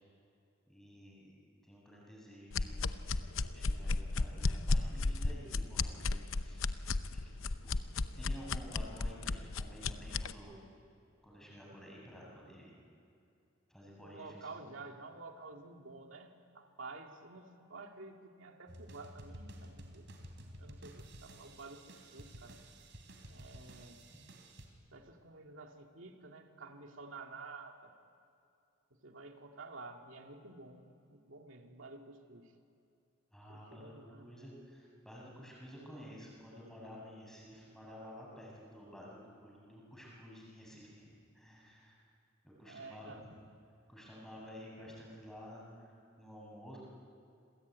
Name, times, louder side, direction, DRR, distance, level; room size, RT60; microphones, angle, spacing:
voice 1, 0.7-3.0 3.5-7.2 7.6-7.7 8.0-10.6 11.2-12.8 13.7-14.6 33.3-42.0 42.4-43.3 43.9-46.8, equal, ahead, -3 dB, 7.5 m, -52 dB
sound 1, 2.5-10.3, left 3 dB, 85° left, 0.8 m, -34 dB
voice 2, 14.0-20.1 20.6-22.6 23.3-24.0 24.9-27.9 29.0-30.8 31.1-32.5 33.5-34.3 35.3-35.5 42.6-43.3, right 3 dB, 75° right, 3 dB, 2.3 m, -51 dB
sound 2, 18.7-24.7, right 1 dB, 60° right, 3.8 m, -52 dB
28.0 x 21.5 x 9.5 m, 2.6 s
head